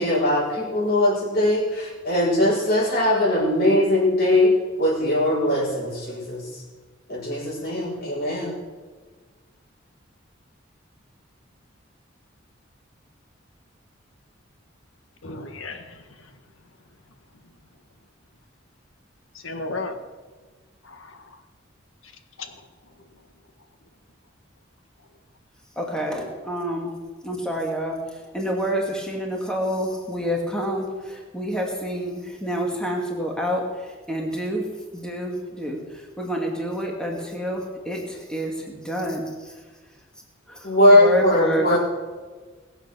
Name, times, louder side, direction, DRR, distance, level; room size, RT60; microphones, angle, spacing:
voice 1, 0.0-4.5 4.8-6.4 7.1-8.5 40.6-41.8, left 1 dB, 50° left, -4 dB, 6.1 m, -20 dB
voice 2, 15.2-16.0 19.3-20.0 20.8-21.2 22.4-22.5 41.6-41.8, left 2 dB, 90° left, 6 dB, 1.6 m, -33 dB
voice 3, 25.8-26.9 27.2-34.7 34.9-39.5 40.5-41.8, equal, 5° left, 0 dB, 2.3 m, -28 dB
20.5 x 8.1 x 6.9 m, 1.4 s
head